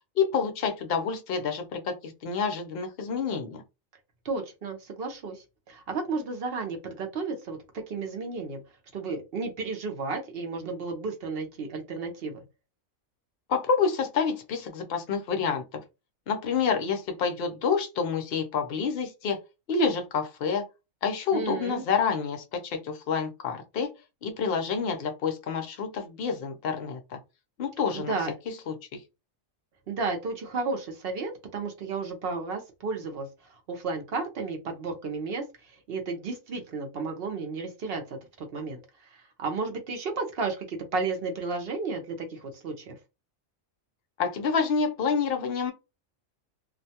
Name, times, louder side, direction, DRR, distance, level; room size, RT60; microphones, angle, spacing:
voice 1, 0.2-3.6 13.5-15.6 16.3-19.4 19.7-20.7 21.0-23.9 24.2-27.2 27.6-28.1 28.5-28.8 44.2-45.7, left 5 dB, 60° left, 0.7 m, -28 dB
voice 2, 4.2-8.6 8.9-12.4 21.3-21.8 27.9-28.3 29.9-35.4 35.9-38.8 39.1-43.0, right 4 dB, 55° right, 0.8 m, -33 dB
2.5 x 2.2 x 2.7 m
omnidirectional pair, 1.4 m